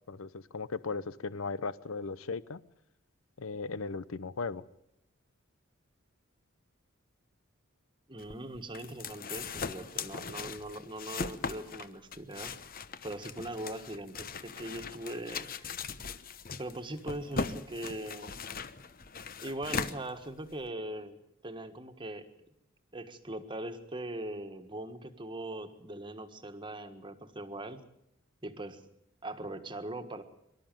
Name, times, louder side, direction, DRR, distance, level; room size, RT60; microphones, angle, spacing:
voice 1, 0.1-2.6 3.4-4.6, left 4 dB, 80° left, 18 dB, 0.7 m, -37 dB
voice 2, 8.1-12.5 13.0-15.8 16.6-18.4 19.4-21.2 21.4-22.2 22.9-27.8 28.4-28.8 29.2-30.2, right 1 dB, 25° right, 8 dB, 1.6 m, -40 dB
sound 1, 8.2-20.7, left 5 dB, 45° left, 1.0 m, -39 dB
24.0 x 13.0 x 9.1 m, 0.80 s
head